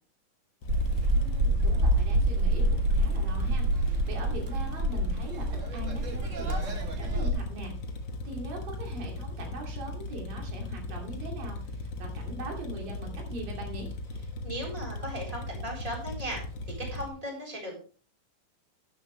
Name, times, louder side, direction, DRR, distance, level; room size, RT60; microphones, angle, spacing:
sound 1, 0.6-17.1, left 2 dB, 60° left, 1.2 m, -38 dB
sound 2, 0.7-7.3, right 1 dB, 55° right, 0.8 m, -27 dB
voice 1, 1.1-8.0 8.2-13.9, right 2 dB, 80° right, 1 dB, 4.3 m, -41 dB
voice 2, 14.4-16.4 16.9-17.7, equal, 10° right, -1 dB, 4.1 m, -37 dB
12.5 x 9.9 x 3.3 m, 0.38 s
omnidirectional pair, 3.9 m